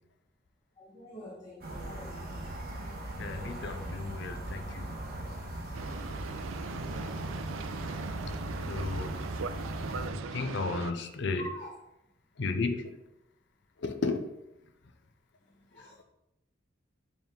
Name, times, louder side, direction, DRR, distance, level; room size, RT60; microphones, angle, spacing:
voice 1, 0.8-2.4 11.4-11.7 15.7-16.0, equal, 20° left, -7 dB, 1.3 m, -46 dB
sound 1, 1.6-10.1, right 1 dB, 50° right, 1.1 m, -39 dB
voice 2, 3.2-4.9 8.7-9.2 10.1-11.5 12.4-12.9 13.8-14.2, left 3 dB, 60° left, 6 dB, 0.6 m, -33 dB
Boat Water vehicle, 5.7-10.9, right 5 dB, 85° right, 0.4 m, -40 dB
7.0 x 3.6 x 3.8 m, 0.89 s
head